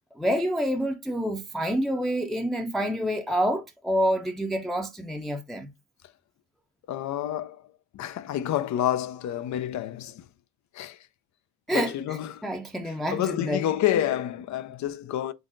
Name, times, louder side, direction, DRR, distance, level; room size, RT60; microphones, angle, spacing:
voice 1, 0.2-5.7 11.7-11.9 12.4-13.6, equal, ahead, 0.5 m, -27 dB
voice 2, 6.9-7.6 7.9-10.3 10.7-11.0 11.7-12.5 12.9-15.3, left 11 dB, 65° left, 0.5 m, -29 dB
3.9 x 3.7 x 2.6 m
cardioid pair, 90°, 30 cm